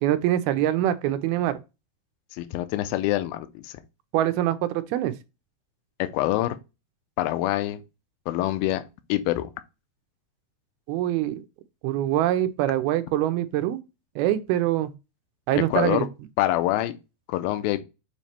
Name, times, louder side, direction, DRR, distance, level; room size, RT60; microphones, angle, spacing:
voice 1, 0.0-1.6 4.1-5.1 10.9-11.4 11.8-13.8 14.2-14.9 15.5-16.1, right 13 dB, 80° right, 2.4 m, -24 dB
voice 2, 2.3-3.7 6.0-6.6 7.2-7.8 8.3-8.8 9.1-9.5 15.6-16.1 16.4-16.9 17.3-17.8, left 15 dB, 80° left, 2.3 m, -25 dB
7.2 x 3.1 x 4.3 m
omnidirectional pair, 4.7 m